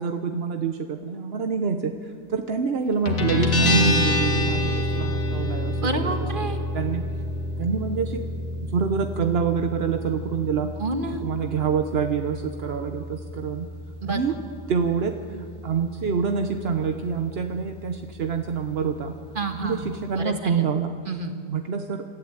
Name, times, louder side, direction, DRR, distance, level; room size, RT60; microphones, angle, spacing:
voice 1, 0.0-6.1 6.5-7.0 7.6-8.2 8.6-10.7 11.2-13.7 14.1-14.4 14.7-19.1 19.6-20.9 21.5-22.0, right 6 dB, 45° right, 6 dB, 0.9 m, -26 dB
Guitar, 3.1-20.3, left 2 dB, 50° left, 2.5 m, -29 dB
voice 2, 5.8-6.6 10.8-11.2 14.0-14.2 19.4-19.9 20.2-20.7 21.1-21.3, right 2 dB, 30° right, 6 dB, 1.7 m, -29 dB
26.5 x 14.0 x 8.8 m, 2.3 s
omnidirectional pair, 1.8 m